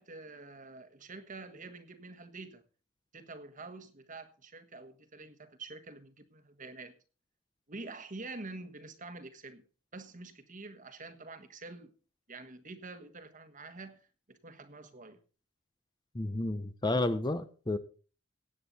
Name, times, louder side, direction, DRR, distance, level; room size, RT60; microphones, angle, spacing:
voice 1, 0.0-2.6 3.1-6.9 7.7-9.6 9.9-11.9 12.3-15.2, right 3 dB, 40° right, 1.4 m, -47 dB
voice 2, 16.1-17.8, left 2 dB, 20° left, 0.7 m, -31 dB
16.5 x 8.8 x 4.1 m
head